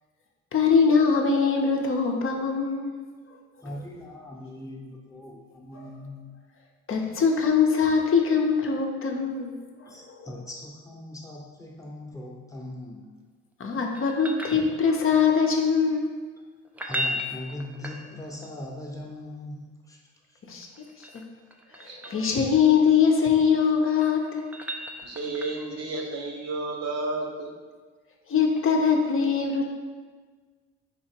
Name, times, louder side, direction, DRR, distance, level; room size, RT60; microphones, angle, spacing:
voice 1, 0.5-3.0 5.7-5.9 6.9-9.5 9.8-10.3 13.6-16.1 20.5-20.7 21.1-21.2 21.8-24.4 28.3-29.7, left 6 dB, 45° left, 1 dB, 0.7 m, -22 dB
voice 2, 3.6-6.3 9.8-13.1 16.8-20.0 20.3-20.4, left 1 dB, 10° left, -1 dB, 0.8 m, -40 dB
sound 1, 13.9-15.2 16.6-18.5 20.6-22.3 23.7-25.8 28.5-28.6, left 1 dB, 5° right, 0.4 m, -36 dB
voice 3, 25.0-27.5, right 2 dB, 60° right, 1 dB, 0.9 m, -32 dB
4.3 x 2.8 x 4.3 m, 1.5 s
cardioid pair, 90°, 30 cm